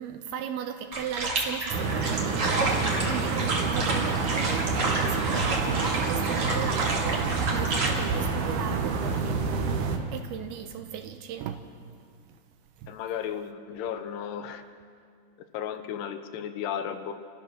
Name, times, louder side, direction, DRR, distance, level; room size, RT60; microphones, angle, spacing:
voice 1, 0.0-11.8 12.8-12.9, right 9 dB, 75° right, 7 dB, 2.5 m, -37 dB
sound 1, 0.9-7.9, right 2 dB, 40° right, 2.5 m, -30 dB
sound 2, 1.7-10.0, right 4 dB, 60° right, 2.3 m, -28 dB
voice 2, 12.9-14.6 15.5-17.1, left 9 dB, 75° left, 8 dB, 2.9 m, -34 dB
28.5 x 14.5 x 6.4 m, 2.3 s
omnidirectional pair, 5.0 m